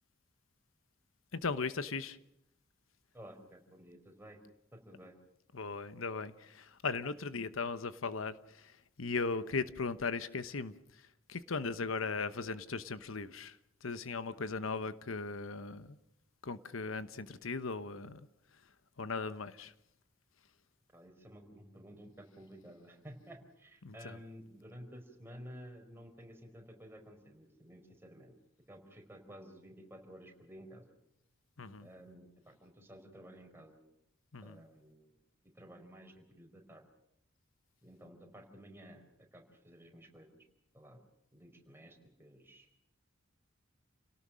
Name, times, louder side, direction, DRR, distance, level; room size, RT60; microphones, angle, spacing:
voice 1, 1.3-2.2 5.5-16.0 16.4-18.3 19.0-19.7 23.8-24.2 31.6-31.9 34.3-34.6, left 4 dB, 80° left, 1.0 m, -38 dB
voice 2, 3.1-4.4 4.7-5.1 20.9-28.3 28.7-30.9 31.8-33.8 34.4-35.1 35.5-36.9 37.8-39.1 39.3-40.4 40.7-41.0 41.3-42.7, equal, 10° right, 4.8 m, -53 dB
29.5 x 18.0 x 6.4 m
head